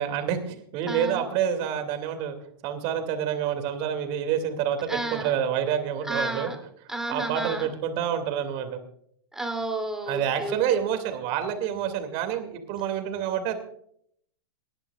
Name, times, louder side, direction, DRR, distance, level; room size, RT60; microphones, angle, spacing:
voice 1, 0.0-2.3 2.6-6.5 7.1-8.8 10.1-13.5, right 9 dB, 45° right, 7 dB, 2.6 m, -28 dB
voice 2, 0.9-1.2 4.9-5.3 6.1-6.6 6.9-7.7 9.3-10.5, right 2 dB, 5° right, 3 dB, 2.9 m, -31 dB
28.5 x 10.5 x 2.5 m, 0.66 s
hypercardioid pair, 120°, 14 cm